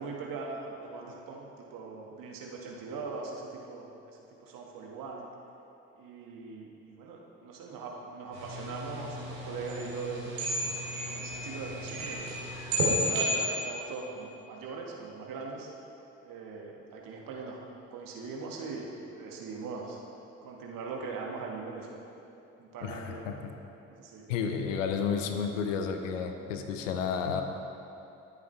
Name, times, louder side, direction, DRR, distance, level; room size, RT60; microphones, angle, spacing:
voice 1, 0.0-3.9 4.4-5.3 6.0-10.5 10.8-12.3 12.7-15.7 16.2-17.6 17.9-20.0 20.4-22.1 22.6-23.4 24.0-24.3, right 4 dB, 60° right, -1 dB, 1.8 m, -41 dB
sound 1, 8.3-13.4, equal, 75° right, 2.6 m, -32 dB
voice 2, 22.8-23.5 24.3-27.4, left 6 dB, 80° left, 6 dB, 0.9 m, -31 dB
19.5 x 8.3 x 3.3 m, 2.9 s
figure-of-eight pair, 45°, 38 cm